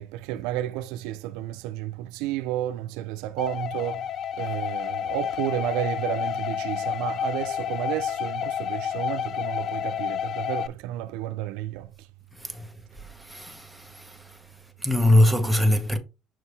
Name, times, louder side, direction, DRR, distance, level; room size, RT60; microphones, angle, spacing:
voice 1, 0.0-4.1 4.4-11.9, right 13 dB, 80° right, 0.5 m, -31 dB
sound 1, 3.4-10.7, left 9 dB, 40° left, 0.3 m, -30 dB
voice 2, 13.0-14.4 14.8-16.0, left 1 dB, ahead, 0.9 m, -23 dB
6.1 x 4.8 x 3.4 m
cardioid pair, 140°, 0 cm